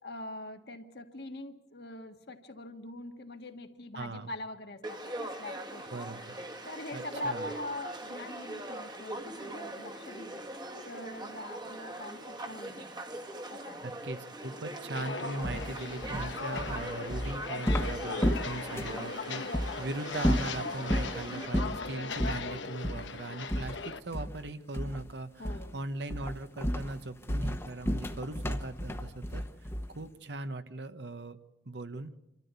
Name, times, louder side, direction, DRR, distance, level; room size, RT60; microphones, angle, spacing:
voice 1, 0.0-5.9 6.6-10.4 10.8-12.9 13.5-13.8 25.4-25.8, left 1 dB, 60° left, 5 dB, 1.6 m, -43 dB
voice 2, 3.9-4.3 5.9-6.4 6.9-7.5 13.8-29.4 29.9-31.4 31.7-32.1, right 2 dB, 70° right, 10 dB, 1.1 m, -39 dB
Conversation / Crowd, 4.8-21.5, right 1 dB, 25° right, 1.4 m, -42 dB
Walk footsteps, 14.9-24.0, left 4 dB, 85° left, 1.1 m, -39 dB
sound 1, 15.4-19.1 19.5-19.7 20.2-21.1 21.5-21.8 22.2-22.4 22.8-23.1 23.5-24.4 24.7-25.1 25.4-25.8 26.1-30.0, equal, 15° left, 1.0 m, -32 dB
27.0 x 13.5 x 8.2 m, 0.96 s
head